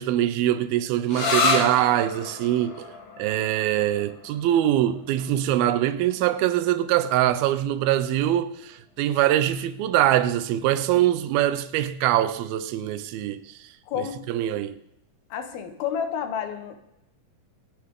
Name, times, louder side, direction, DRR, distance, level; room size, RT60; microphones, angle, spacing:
voice 1, 0.0-13.7 14.0-14.8, right 12 dB, 90° right, 2.6 m, -23 dB
sound 1, 1.1-8.5, left 3 dB, 60° left, 3.4 m, -31 dB
voice 2, 13.9-14.2 15.3-16.8, left 8 dB, 90° left, 3.2 m, -30 dB
25.5 x 9.7 x 3.7 m
omnidirectional pair, 4.2 m